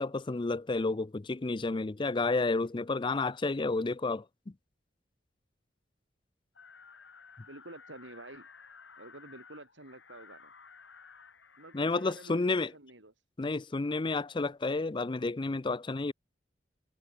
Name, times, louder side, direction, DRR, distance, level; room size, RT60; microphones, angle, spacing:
voice 1, 0.0-4.5 11.7-12.7 13.4-16.1, left 3 dB, 25° left, 0.5 m, -31 dB
sound 1, 6.6-12.8, left 5 dB, 80° left, 4.7 m, -55 dB
voice 2, 7.5-8.5 9.0-10.5 11.6-13.1, right 2 dB, 85° right, 5.2 m, -49 dB
head